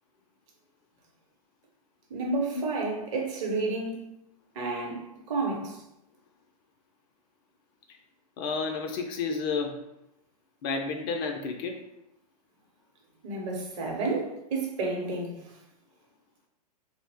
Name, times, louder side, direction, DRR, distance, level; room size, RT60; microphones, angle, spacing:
voice 1, 2.1-4.0 4.5-5.8 13.2-15.6, right 3 dB, 50° right, 0.8 m, -31 dB
voice 2, 8.4-9.8 10.6-11.8, left 4 dB, 35° left, 0.3 m, -31 dB
2.4 x 2.0 x 3.4 m
figure-of-eight pair, 105°, 20 cm